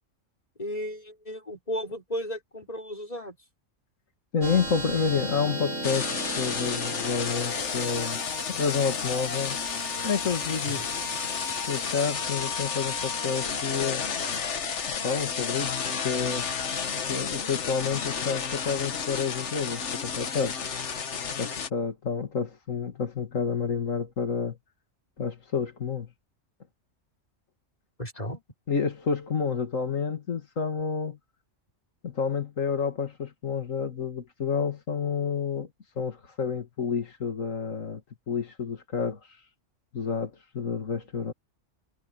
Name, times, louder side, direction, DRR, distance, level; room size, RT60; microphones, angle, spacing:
voice 1, 0.6-3.4 10.8-10.9 28.0-28.4, equal, 30° left, 5.1 m, -34 dB
voice 2, 4.3-6.1 6.4-8.2 8.5-9.6 10.0-10.9 11.7-14.0 15.0-15.7 16.0-16.5 17.1-20.6 21.4-24.6 25.2-26.1 28.7-31.2 32.0-35.7 36.0-38.0 38.3-39.2 39.9-41.3, left 6 dB, 85° left, 2.6 m, -29 dB
sound 1, 4.4-15.3, right 1 dB, 80° right, 8.4 m, -38 dB
sound 2, 5.8-21.7, left 6 dB, 65° left, 1.5 m, -31 dB
omnidirectional pair, 1.3 m